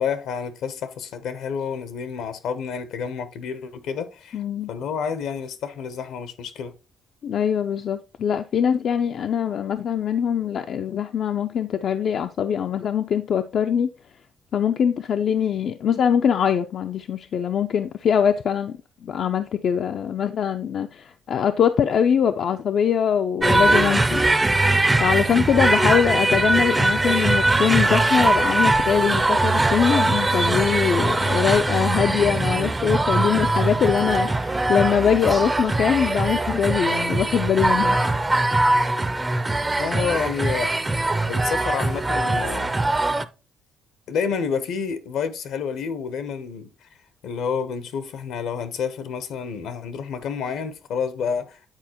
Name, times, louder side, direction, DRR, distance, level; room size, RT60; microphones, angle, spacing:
voice 1, 0.0-4.4 4.7-6.7 25.7-25.8 39.8-40.7 41.3-42.7 44.1-46.9 47.2-51.7, left 6 dB, 80° left, 0.8 m, -29 dB
voice 2, 4.3-4.7 7.2-13.9 14.5-18.7 19.0-24.3 25.0-38.0, left 8 dB, 65° left, 0.4 m, -22 dB
sound 1, 23.4-43.3, right 2 dB, 20° right, 0.5 m, -21 dB
8.9 x 4.3 x 2.9 m
cardioid pair, 90°, 0 cm